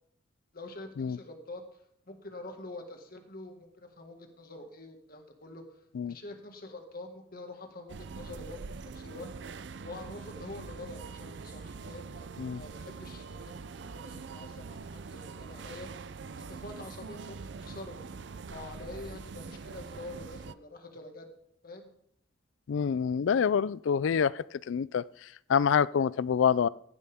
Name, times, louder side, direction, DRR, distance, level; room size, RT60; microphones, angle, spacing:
voice 1, 0.5-8.6 8.9-9.3 9.8-13.5 13.9-15.9 16.4-18.2 18.5-21.3 21.6-21.9, left 2 dB, 50° left, 4 dB, 1.9 m, -46 dB
sound 1, 7.9-20.5, right 4 dB, 65° right, 0.5 m, -43 dB
voice 2, 22.7-26.7, left 7 dB, 90° left, 20 dB, 0.4 m, -27 dB
15.5 x 11.0 x 3.6 m, 0.73 s
head